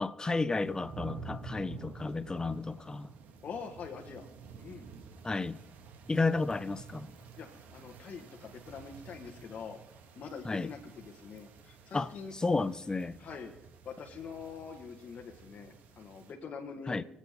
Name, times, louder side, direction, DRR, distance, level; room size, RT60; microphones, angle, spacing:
voice 1, 0.0-3.1 5.2-5.6 6.1-7.1 10.4-10.7 11.9-13.2 16.9-17.0, left 3 dB, 25° left, 0.7 m, -32 dB
sound 1, 0.6-16.3, right 5 dB, 80° right, 1.7 m, -50 dB
voice 2, 3.4-4.3 4.6-4.9 7.2-9.8 10.1-12.3 13.2-13.5 13.8-17.0, left 6 dB, 60° left, 1.6 m, -44 dB
24.0 x 8.3 x 3.7 m
supercardioid pair, 60°, 3 cm